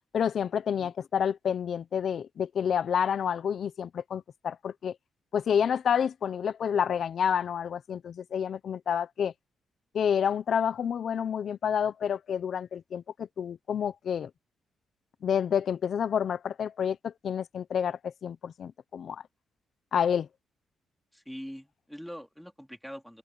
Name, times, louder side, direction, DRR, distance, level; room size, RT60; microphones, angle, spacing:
voice 1, 0.1-4.9 5.3-9.3 9.9-14.3 15.2-19.2 19.9-20.3, left 8 dB, 55° left, 0.8 m, -29 dB
voice 2, 21.1-23.2, equal, ahead, 3.4 m, -43 dB
open air
cardioid pair, 120°, 0 cm